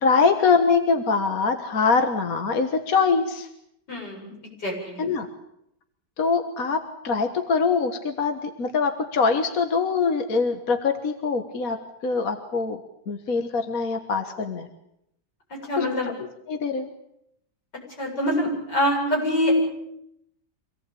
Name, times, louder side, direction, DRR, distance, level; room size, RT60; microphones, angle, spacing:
voice 1, 0.0-3.5 5.0-5.3 6.2-6.8 7.0-11.8 12.0-12.8 13.1-14.7 15.8-15.9 16.5-16.9, left 4 dB, 55° left, 6 dB, 1.9 m, -23 dB
voice 2, 3.9-4.3 4.6-5.1 15.5-16.1 18.0-19.5, equal, 90° left, -1 dB, 8.6 m, -25 dB
25.5 x 18.0 x 8.6 m, 0.78 s
omnidirectional pair, 1.8 m